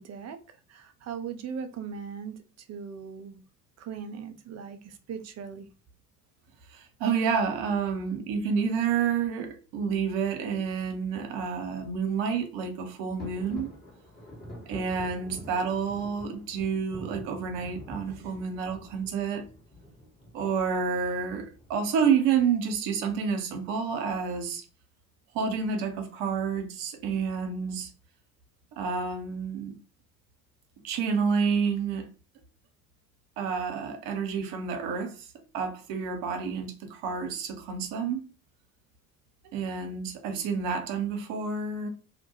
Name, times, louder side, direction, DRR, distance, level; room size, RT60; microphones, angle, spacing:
voice 1, 0.0-3.4 3.8-5.7, right 6 dB, 35° right, 0.5 m, -39 dB
voice 2, 6.7-13.7 14.7-19.5 20.3-24.6 25.3-27.9 28.7-29.7 30.8-32.1 33.4-35.3 35.5-38.2 39.5-41.9, right 6 dB, 65° right, 0.7 m, -29 dB
sound 1, 13.2-21.8, equal, 20° left, 1.3 m, -46 dB
2.3 x 2.1 x 3.0 m
figure-of-eight pair, 50°, 47 cm